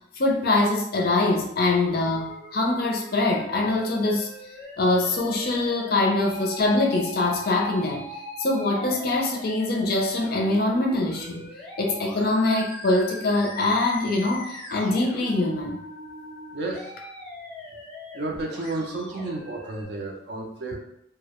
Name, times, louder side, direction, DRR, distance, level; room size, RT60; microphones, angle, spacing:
voice 1, 0.2-4.3 4.8-8.1 8.4-11.5 11.8-15.8, left 2 dB, 50° left, 1 dB, 0.4 m, -23 dB
Musical instrument, 1.9-19.8, equal, 5° left, 0.6 m, -41 dB
voice 2, 16.5-16.9 18.1-20.8, right 2 dB, 55° right, 1 dB, 0.4 m, -32 dB
2.2 x 2.1 x 2.8 m, 0.77 s
head